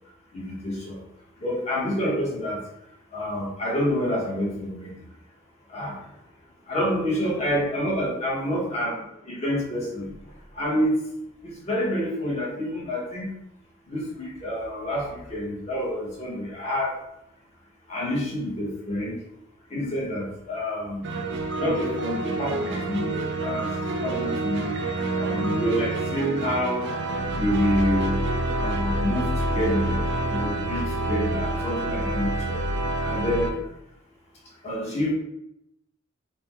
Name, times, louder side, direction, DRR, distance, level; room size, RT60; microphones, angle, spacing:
voice 1, 0.3-0.9 1.4-2.6 3.1-4.9 5.7-6.0 6.7-9.0 9.3-10.1 10.6-11.0 11.7-13.3 13.9-15.0 15.3-17.0 17.9-19.2 19.7-21.0 21.6-24.8 25.2-26.9 27.4-28.2 28.6-30.0 30.3-32.6 33.0-33.6 34.6-35.1, equal, 30° left, -4 dB, 1.0 m, -27 dB
sound 1, 21.0-33.5, right 2 dB, 55° right, 0.5 m, -27 dB
3.7 x 2.1 x 4.3 m, 0.83 s
head